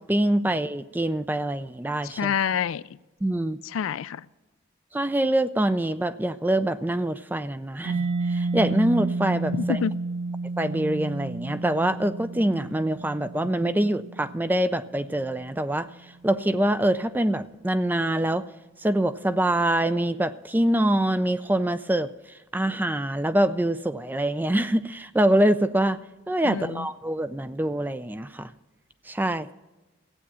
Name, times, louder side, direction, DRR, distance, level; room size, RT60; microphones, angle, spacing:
voice 1, 0.0-2.3 3.2-3.6 4.9-9.8 10.6-15.9 16.2-18.4 18.8-22.1 22.5-26.0 26.3-28.5 29.1-29.5, right 1 dB, 10° right, 13 dB, 0.3 m, -24 dB
voice 2, 2.0-2.8 3.6-4.2 9.5-9.9 13.6-13.7 26.4-26.9, left 7 dB, 75° left, 17 dB, 0.4 m, -27 dB
Mallet percussion, 7.8-15.3, right 3 dB, 50° right, 1.2 m, -31 dB
15.5 x 8.5 x 5.6 m, 1.1 s
head